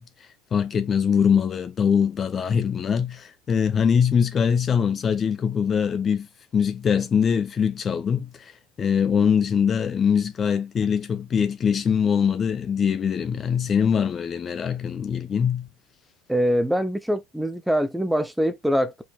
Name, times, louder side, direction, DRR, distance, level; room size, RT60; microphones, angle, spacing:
voice 1, 0.5-6.3 6.5-8.5 8.8-15.7, left 7 dB, 30° left, 0.7 m, -22 dB
voice 2, 16.3-19.0, equal, 5° right, 0.8 m, -23 dB
4.8 x 4.1 x 2.4 m
figure-of-eight pair, 70°, 0 cm